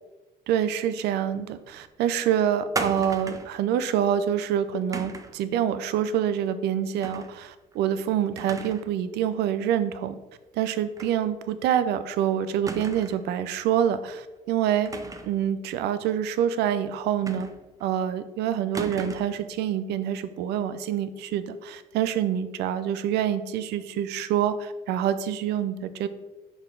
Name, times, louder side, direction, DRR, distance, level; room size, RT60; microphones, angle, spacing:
voice 1, 0.5-10.2 10.5-14.9 15.2-17.5 17.8-26.1, right 9 dB, 80° right, 12 dB, 0.5 m, -26 dB
sound 1, 2.7-3.6 4.9-5.4 7.0-7.3 7.7-7.8 8.4-8.9 9.2-9.3 11.0-11.2 11.5-11.6 12.7-13.3 14.8-15.4 17.3-17.8 18.7-19.4, right 3 dB, 20° right, 0.6 m, -35 dB
5.9 x 4.6 x 3.8 m, 1.1 s
cardioid pair, 110°, 17 cm